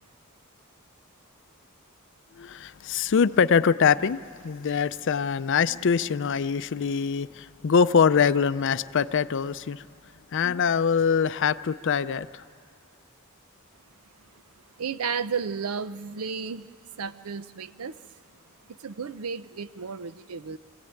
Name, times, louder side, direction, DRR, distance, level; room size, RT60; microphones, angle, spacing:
voice 1, 2.3-4.2 4.4-9.8 10.3-12.4, left 6 dB, 55° left, 15 dB, 0.5 m, -23 dB
voice 2, 14.8-16.7 16.9-18.0 18.7-20.6, right 6 dB, 85° right, 15 dB, 0.6 m, -33 dB
25.0 x 15.5 x 9.0 m, 2.3 s
head